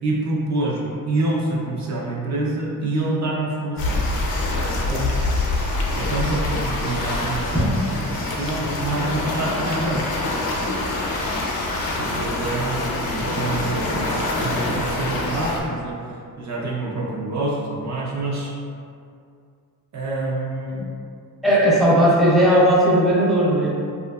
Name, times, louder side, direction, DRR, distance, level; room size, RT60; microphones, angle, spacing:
voice 1, 0.0-4.0 4.6-4.8 5.9-7.8 8.1-10.2 10.6-10.8 12.0-16.0 16.4-18.5 19.9-20.8, right 2 dB, 55° right, -4 dB, 0.5 m, -26 dB
sound 1, 3.8-15.6, left 2 dB, 85° left, 0.5 m, -25 dB
voice 2, 21.4-23.7, equal, ahead, -7 dB, 0.4 m, -17 dB
2.6 x 2.4 x 2.3 m, 2.4 s
cardioid pair, 95°, 35 cm